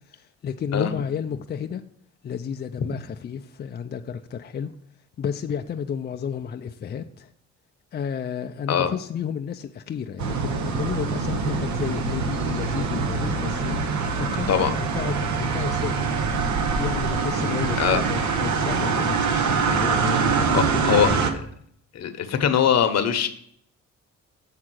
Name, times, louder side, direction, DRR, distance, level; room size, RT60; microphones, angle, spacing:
voice 1, 0.1-1.8 2.2-4.7 5.2-7.3 7.9-14.5 14.9-16.1 16.8-21.3, left 7 dB, 35° left, 0.4 m, -31 dB
sound 1, 10.2-21.3, right 5 dB, 70° right, 0.9 m, -24 dB
voice 2, 20.5-21.4 21.9-23.3, left 8 dB, 60° left, 0.9 m, -22 dB
7.5 x 3.6 x 6.2 m
cardioid pair, 90°, 30 cm